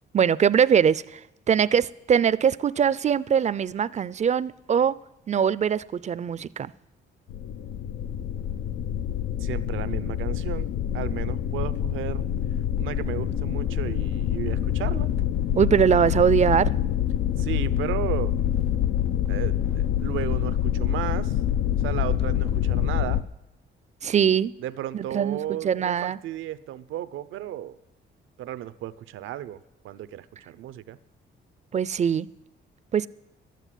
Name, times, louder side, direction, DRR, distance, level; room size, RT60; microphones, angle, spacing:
voice 1, 0.1-1.2 1.5-5.0 5.3-6.7 15.5-16.7 24.0-24.5 24.9-26.2 31.7-32.3 32.9-33.1, right 8 dB, 35° right, 0.5 m, -22 dB
sound 1, 7.3-23.2, left 10 dB, 85° left, 0.7 m, -26 dB
voice 2, 9.4-10.7 10.9-12.3 12.8-15.1 17.4-18.3 19.3-21.4 21.8-23.2 24.6-27.8 28.4-29.6 29.8-31.0, right 12 dB, 85° right, 0.7 m, -34 dB
12.0 x 9.2 x 10.0 m
cardioid pair, 90°, 20 cm